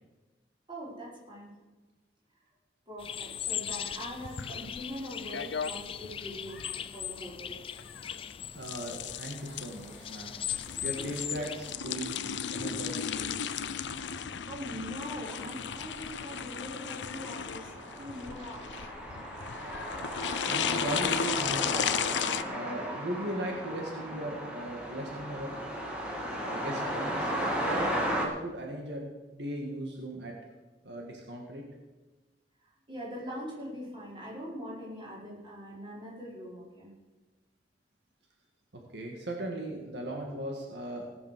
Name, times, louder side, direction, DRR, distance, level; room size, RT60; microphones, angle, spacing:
voice 1, 0.7-1.5 2.9-7.6 14.5-19.8 32.6-36.9, equal, 30° right, -5 dB, 5.0 m, -42 dB
sound 1, 3.0-11.8, left 10 dB, 30° left, 0.3 m, -39 dB
sound 2, 3.7-22.4, left 8 dB, 90° left, 0.6 m, -35 dB
voice 2, 8.5-10.3 10.8-13.3 19.6-19.9 20.5-21.9 22.5-25.6 26.4-27.3 27.7-29.1 29.3-30.3 30.8-31.6 38.7-41.1, right 1 dB, 75° right, 1 dB, 2.0 m, -38 dB
sound 3, 9.9-10.2 10.8-11.8 12.2-12.3 12.7-28.3, right 1 dB, 5° right, 2.2 m, -36 dB
17.5 x 7.3 x 6.8 m, 1.2 s
head